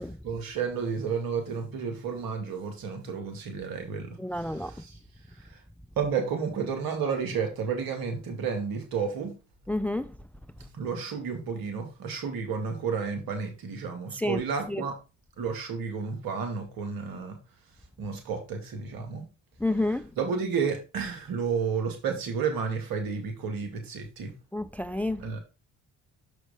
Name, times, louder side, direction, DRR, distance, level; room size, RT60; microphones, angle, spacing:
voice 1, 0.2-4.9 5.5-5.6 6.0-9.3 10.6-15.0 15.4-17.4 18.0-19.3 20.2-24.3 25.2-25.4, right 6 dB, 70° right, 2.3 m, -31 dB
voice 2, 4.2-4.7 9.7-10.1 14.1-14.4 14.7-14.8 19.6-20.1 24.5-25.2, left 1 dB, 5° left, 0.5 m, -29 dB
6.4 x 4.8 x 5.0 m
hypercardioid pair, 55°, 36 cm